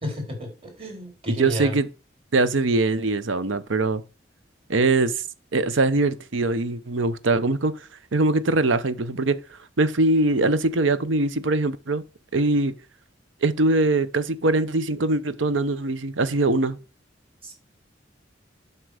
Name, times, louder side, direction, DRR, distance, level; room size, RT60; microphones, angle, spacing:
voice 1, 0.0-1.8 17.4-17.5, left 1 dB, 30° right, 4.0 m, -32 dB
voice 2, 1.3-1.9 2.3-4.0 4.7-5.1 5.5-7.8 8.1-9.4 9.8-12.0 12.3-12.7 13.4-16.8, right 2 dB, 90° right, 0.8 m, -22 dB
7.7 x 5.9 x 4.9 m
head